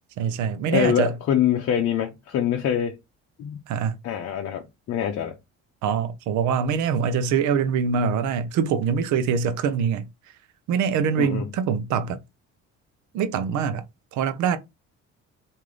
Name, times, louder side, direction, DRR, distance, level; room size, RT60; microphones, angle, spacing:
voice 1, 0.2-1.1 3.7-4.0 5.8-10.1 10.7-12.2 13.1-13.9 14.1-14.6, right 7 dB, 85° right, 0.6 m, -24 dB
voice 2, 0.7-3.0 3.4-3.6 4.0-5.3 11.2-11.5, left 9 dB, 55° left, 0.6 m, -24 dB
3.2 x 2.7 x 3.7 m
cardioid pair, 115°, 29 cm